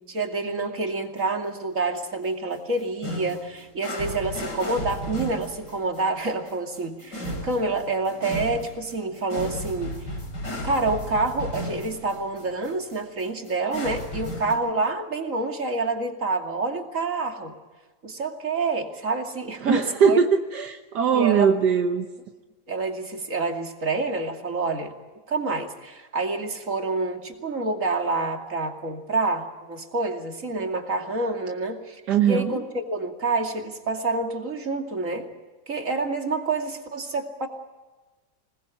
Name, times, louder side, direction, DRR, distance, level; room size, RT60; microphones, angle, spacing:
voice 1, 0.1-10.0 10.6-17.6 18.0-20.2 21.1-21.5 22.7-24.9 25.3-35.3 35.7-37.5, right 3 dB, 50° right, 3 dB, 3.0 m, -28 dB
sound 1, 1.2-1.3 2.0-2.3 2.5-14.5, equal, 90° left, 8.0 m, -35 dB
voice 2, 19.6-20.3 20.5-22.1 32.1-32.6, right 7 dB, 75° right, 5 dB, 1.7 m, -20 dB
27.0 x 20.0 x 8.3 m, 1.3 s
omnidirectional pair, 1.8 m